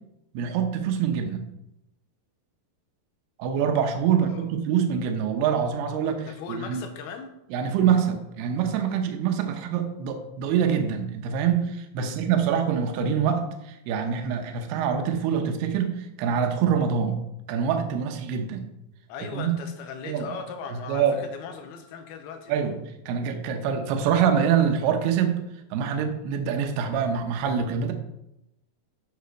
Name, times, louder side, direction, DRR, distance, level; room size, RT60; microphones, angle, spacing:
voice 1, 0.3-1.4 3.4-6.8 7.5-17.2 17.5-18.7 19.3-19.5 20.1-20.3 20.7-21.1 22.5-22.8 23.1-25.4 25.7-27.9, right 7 dB, 80° right, 5 dB, 2.8 m, -25 dB
voice 2, 6.2-7.3 12.0-12.2 19.1-22.5, left 5 dB, 80° left, 6 dB, 2.6 m, -38 dB
8.3 x 6.8 x 5.1 m, 0.85 s
omnidirectional pair, 4.7 m